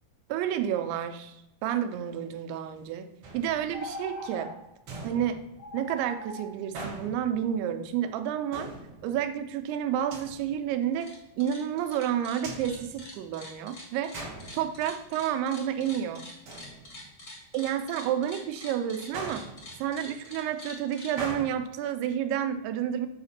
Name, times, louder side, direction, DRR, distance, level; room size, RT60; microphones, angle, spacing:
voice 1, 0.3-3.1 3.3-4.5 5.0-5.4 5.7-8.7 9.0-14.2 14.5-16.3 17.5-19.5 19.8-23.1, right 10 dB, 90° right, 9 dB, 2.6 m, -30 dB
sound 1, 3.2-4.1 4.9-5.9 6.7-7.7 8.5-9.4 10.1-10.8 12.4-13.6 14.1-15.2 15.5-16.0 16.5-17.3 19.1-20.1 21.2-21.5, right 2 dB, 60° right, 1.3 m, -42 dB
sound 2, 3.7-4.5 4.9-5.0 5.6-6.5, left 1 dB, 10° left, 0.7 m, -40 dB
sound 3, 10.8-11.1 11.4-21.1, left 1 dB, 80° left, 0.7 m, -45 dB
8.0 x 2.8 x 5.7 m, 0.88 s
omnidirectional pair, 4.5 m